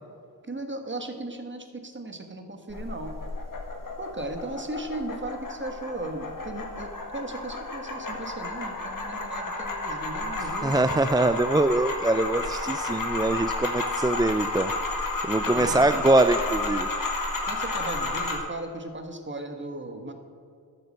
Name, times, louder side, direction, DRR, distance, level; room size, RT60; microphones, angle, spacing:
voice 1, 0.5-3.1 4.0-10.7 15.4-16.1 17.4-20.1, right 2 dB, 30° right, 5 dB, 1.5 m, -36 dB
sound 1, 2.7-18.4, left 2 dB, 55° left, 1.8 m, -32 dB
voice 2, 10.4-14.7 15.2-16.9, right 2 dB, 10° right, 10 dB, 0.3 m, -23 dB
12.0 x 6.8 x 6.5 m, 2.4 s
cardioid pair, 60°, 38 cm